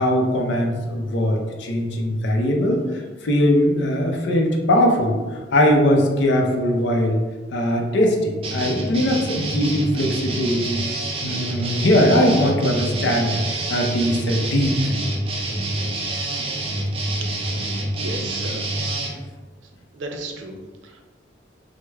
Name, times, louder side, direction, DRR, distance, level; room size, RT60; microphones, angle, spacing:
voice 1, 0.0-7.2 7.5-13.4 13.7-15.0, equal, 75° left, 1 dB, 0.5 m, -20 dB
sound 1, 8.4-19.1, right 2 dB, 30° right, 0.4 m, -27 dB
voice 2, 17.9-18.6 19.0-19.2 19.9-21.0, right 2 dB, 85° right, 3 dB, 0.5 m, -35 dB
3.2 x 2.1 x 3.3 m, 1.3 s
head